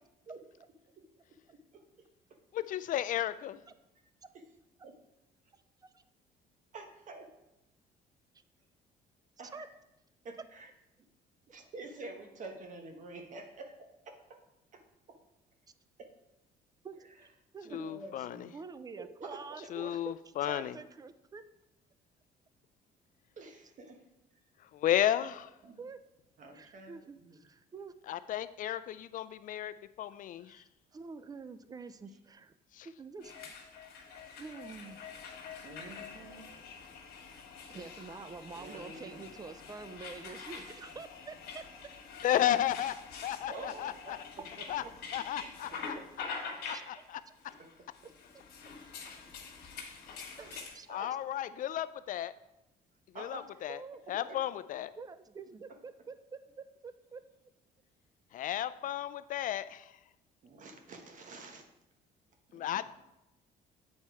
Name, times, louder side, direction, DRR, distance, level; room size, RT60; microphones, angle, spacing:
voice 1, 2.5-3.6 17.7-18.5 19.7-20.8 24.7-25.5 28.1-30.6 32.7-32.9 42.2-43.0 43.2-44.2 44.7-44.8 45.1-45.9 46.6-47.2 50.9-52.3 53.2-53.8 54.1-54.9 58.3-59.9 62.5-62.8, left 11 dB, 50° left, 14 dB, 0.4 m, -33 dB
voice 2, 6.7-7.3 9.4-9.7 10.2-10.7 11.5-13.7 14.0-14.2 14.7-14.8 16.0-16.1 17.6-18.6 19.0-19.6 23.4-24.0 25.6-25.8 26.4-27.4 35.6-36.5 38.6-39.3 43.5-44.2 44.6-44.9 45.4-46.1 47.6-47.7 49.5-49.6 50.4-50.5 50.9-51.1 53.1-53.6 54.2-54.4 60.4-61.6 62.5-62.8, right 3 dB, 50° right, 4 dB, 1.2 m, -48 dB
voice 3, 17.5-18.3 18.5-21.4 25.8-26.0 26.5-27.9 30.4-30.6 30.9-32.5 32.8-33.4 34.4-35.0 37.7-41.6 46.6-47.3 50.4-50.5 50.7-50.9 53.7-54.2 55.0-57.2, right 4 dB, 20° right, 12 dB, 0.5 m, -47 dB
sound 1, 33.2-50.8, left 5 dB, 75° left, 1.6 m, -46 dB
8.1 x 4.3 x 4.7 m, 0.92 s
cardioid pair, 110°, 17 cm